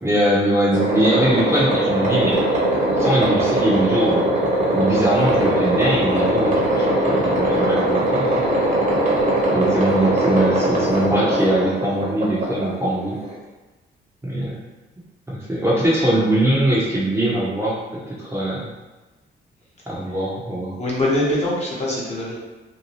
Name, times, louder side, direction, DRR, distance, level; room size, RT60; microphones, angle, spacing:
voice 1, 0.0-2.4 3.0-4.3 4.7-8.4 9.5-13.2 14.2-14.6 15.3-18.7 19.9-20.8, right 1 dB, 15° right, -7 dB, 0.8 m, -21 dB
sound 1, 0.7-13.3, right 1 dB, 35° right, 1.0 m, -20 dB
voice 2, 20.8-22.4, left 1 dB, 35° left, -6 dB, 0.9 m, -23 dB
2.7 x 2.2 x 3.0 m, 1.1 s
cardioid pair, 90°, 20 cm